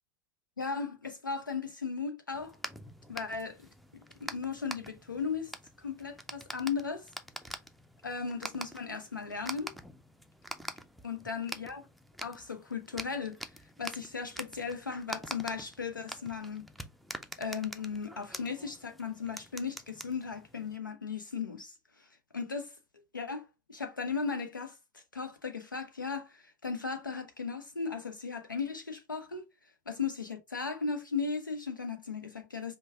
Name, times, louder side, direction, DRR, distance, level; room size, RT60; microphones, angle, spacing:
voice 1, 0.6-2.6 3.1-3.7 4.2-5.5 5.8-7.1 8.0-9.7 11.0-11.8 12.2-13.4 13.8-16.7 17.4-22.0 22.3-22.7 23.1-29.4 29.9-32.8, left 5 dB, 85° left, 0.9 m, -36 dB
sound 1, 2.3-20.8, equal, ahead, 0.5 m, -46 dB
5.3 x 2.3 x 3.4 m
figure-of-eight pair, 85°, 10 cm